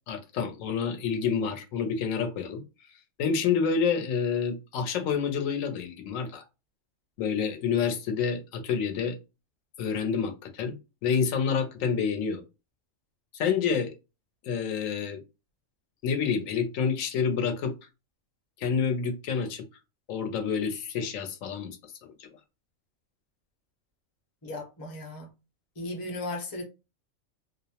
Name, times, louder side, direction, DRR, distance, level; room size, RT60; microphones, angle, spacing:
voice 1, 0.1-2.6 3.2-6.4 7.2-9.2 9.8-10.8 11.0-12.4 13.3-13.9 14.4-15.2 16.0-17.8 18.6-19.7 20.1-22.3, left 6 dB, 90° left, 1.0 m, -28 dB
voice 2, 24.4-25.3 25.8-26.6, left 2 dB, 25° left, 0.5 m, -36 dB
2.4 x 2.0 x 2.7 m
omnidirectional pair, 1.3 m